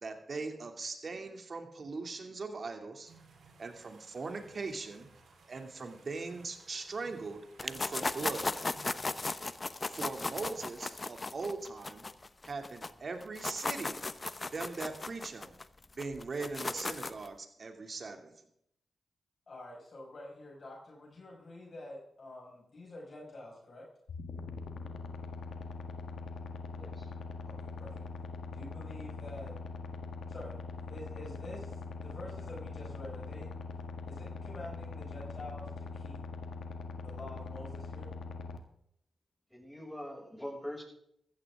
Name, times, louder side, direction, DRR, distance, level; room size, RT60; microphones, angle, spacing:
voice 1, 0.0-3.1 3.6-5.1 5.5-8.5 9.9-12.1 12.4-14.0 14.5-15.6 15.9-18.4, right 3 dB, 55° right, 5 dB, 2.7 m, -40 dB
sound 1, 3.0-9.3, right 4 dB, 80° right, 4.0 m, -60 dB
sound 2, 7.6-12.9 13.2-17.3, left 3 dB, 35° left, 0.8 m, -36 dB
voice 2, 19.5-23.9 27.5-28.1 28.5-29.6 30.3-30.6 30.9-33.5 34.1-36.2 37.0-38.1, left 1 dB, 55° left, -2 dB, 5.8 m, -47 dB
sound 3, 24.1-38.6, left 4 dB, 80° left, 1.6 m, -42 dB
voice 3, 26.7-27.1 39.5-40.8, equal, 5° left, 0 dB, 6.5 m, -43 dB
15.0 x 14.0 x 3.7 m, 0.72 s
cardioid pair, 50°, 0 cm